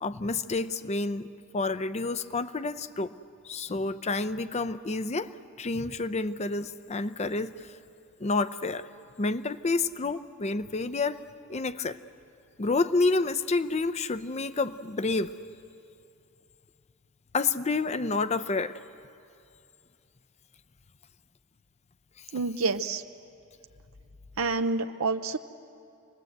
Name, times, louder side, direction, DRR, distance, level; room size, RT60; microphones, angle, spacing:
voice 1, 0.0-1.3 1.5-3.1 3.4-5.3 5.6-7.7 8.2-8.9 9.2-11.2 11.5-12.0 12.6-15.3 17.3-18.8, left 3 dB, 35° left, 13 dB, 0.6 m, -29 dB
voice 2, 22.3-23.0 24.4-25.4, right 3 dB, 80° right, 8 dB, 0.7 m, -28 dB
27.5 x 20.0 x 8.0 m, 2.6 s
head